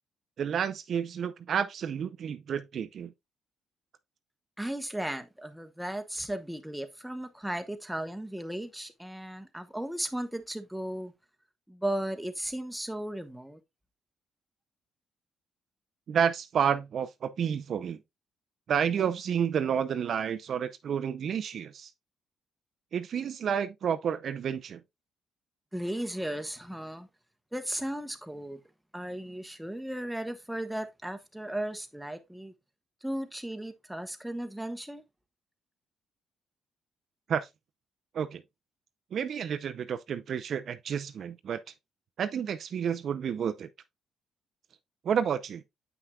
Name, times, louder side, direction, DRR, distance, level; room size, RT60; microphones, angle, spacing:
voice 1, 0.4-3.1 16.1-18.0 18.7-21.9 22.9-24.8 37.3-37.5 38.1-38.4 39.1-41.6 42.2-43.7 45.0-45.6, right 8 dB, 60° right, 0.5 m, -30 dB
voice 2, 4.6-11.1 11.7-13.6 25.7-27.1 27.5-28.6 28.9-32.5 33.0-35.0, right 1 dB, 5° right, 1.0 m, -36 dB
8.1 x 5.8 x 2.3 m
cardioid pair, 90°, 0 cm